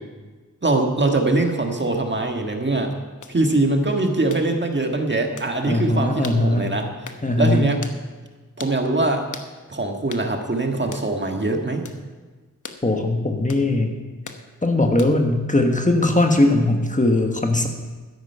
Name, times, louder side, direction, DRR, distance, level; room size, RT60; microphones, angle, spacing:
voice 1, 0.6-2.9 3.3-6.9 7.4-7.8 8.6-9.3 9.7-11.8, right 2 dB, 35° right, 3 dB, 1.6 m, -22 dB
sound 1, 3.2-3.4 4.3-4.5 5.4-5.5 6.2-6.4 7.1-7.2 7.8-8.0 8.6-8.8 9.3-9.5 10.1-10.3 10.9-11.1 11.9-12.0 12.6-12.8 13.5-13.7 14.3-14.4 15.0-15.3, left 5 dB, 65° left, 1.1 m, -38 dB
voice 2, 5.7-6.7 7.2-7.6 12.8-13.9 14.6-17.7, left 2 dB, 25° left, 3 dB, 1.3 m, -19 dB
13.0 x 10.5 x 5.6 m, 1.3 s
wide cardioid pair, 75°, 32 cm